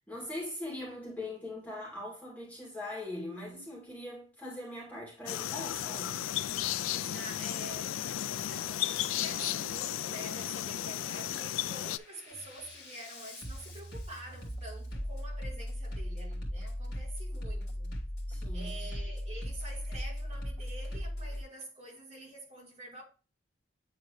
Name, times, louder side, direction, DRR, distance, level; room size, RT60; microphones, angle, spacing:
voice 1, 0.1-6.3 18.3-18.7, left 1 dB, 5° left, 2.4 m, -41 dB
sound 1, 5.3-12.0, left 12 dB, 80° left, 0.3 m, -34 dB
Bass drum, 5.7-5.8 6.3-6.8 7.6-7.8 8.3-8.8 9.6-9.8 10.3-10.8 11.2-21.4, equal, 50° left, 3.0 m, -39 dB
voice 2, 6.9-17.9 18.5-23.0, right 1 dB, 30° right, 3.4 m, -47 dB
9.5 x 3.8 x 3.1 m
head